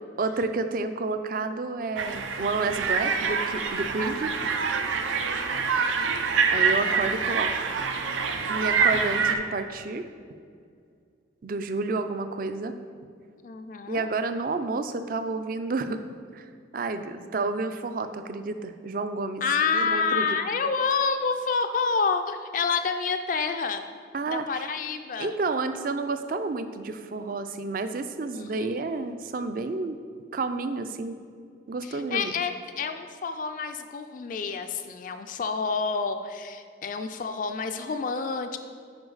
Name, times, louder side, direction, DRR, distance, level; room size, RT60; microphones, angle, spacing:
voice 1, 0.2-4.3 6.5-7.8 8.5-10.1 11.4-12.8 13.9-16.0 16.3-19.4 19.7-20.3 24.1-24.7 25.2-30.0 30.3-31.2 31.7-32.3, right 3 dB, 45° right, 9 dB, 0.4 m, -30 dB
sound 1, 2.0-9.3, right 5 dB, 85° right, 0.6 m, -26 dB
voice 2, 13.4-14.1 19.4-23.8 24.3-25.3 28.3-28.8 31.8-38.6, left 5 dB, 45° left, 7 dB, 0.3 m, -28 dB
9.7 x 5.1 x 4.0 m, 2.3 s
head